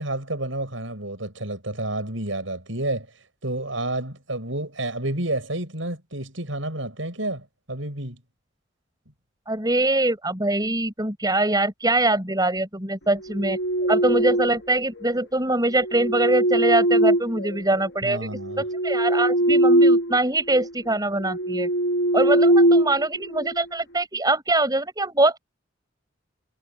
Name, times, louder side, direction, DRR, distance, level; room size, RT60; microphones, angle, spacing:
voice 1, 0.0-3.1 3.4-8.2 18.0-18.6, right 1 dB, 75° right, 7.5 m, -30 dB
voice 2, 9.5-13.6 13.9-18.3 18.8-21.7 22.1-25.4, right 2 dB, 20° right, 6.4 m, -23 dB
sound 1, 13.2-14.7 15.7-17.8 18.3-20.2 20.5-20.7 21.2-23.6, right 1 dB, 65° left, 2.1 m, -21 dB
head